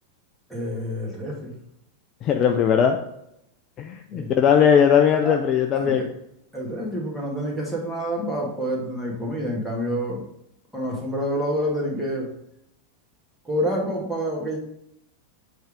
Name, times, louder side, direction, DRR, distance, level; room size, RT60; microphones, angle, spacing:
voice 1, 0.5-1.5 4.1-4.3 5.2-5.4 5.8-6.1 6.5-10.2 10.7-12.3 13.4-14.6, equal, 5° right, -3 dB, 2.0 m, -27 dB
voice 2, 2.2-3.0 3.8-6.1, left 8 dB, 30° left, 5 dB, 0.5 m, -19 dB
7.8 x 3.5 x 4.9 m, 0.78 s
figure-of-eight pair, 90°, 0 cm